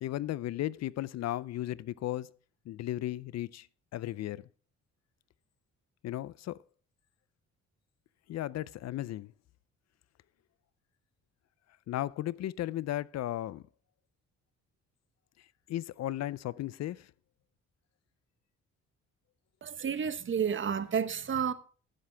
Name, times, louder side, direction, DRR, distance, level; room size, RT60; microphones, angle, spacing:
voice 1, 0.0-2.4 2.7-3.7 3.9-4.5 6.0-6.6 8.3-9.3 11.9-13.6 15.7-17.1, left 14 dB, 60° left, 0.5 m, -35 dB
voice 2, 19.6-21.5, right 7 dB, 40° right, 1.0 m, -31 dB
15.5 x 7.7 x 3.4 m
cardioid pair, 90°, 30 cm